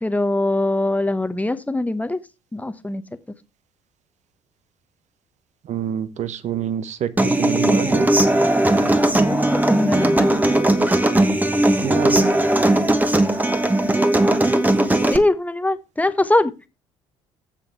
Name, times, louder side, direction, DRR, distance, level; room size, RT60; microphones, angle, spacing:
voice 1, 0.0-2.2 2.5-3.0 9.3-10.3 15.1-16.5, left 2 dB, 10° left, 1.0 m, -22 dB
voice 2, 5.7-8.1 11.8-12.3, right 9 dB, 50° right, 1.0 m, -26 dB
Human voice / Acoustic guitar, 7.2-15.2, right 1 dB, 10° right, 1.3 m, -18 dB
8.9 x 7.6 x 4.6 m
hypercardioid pair, 55°, 15 cm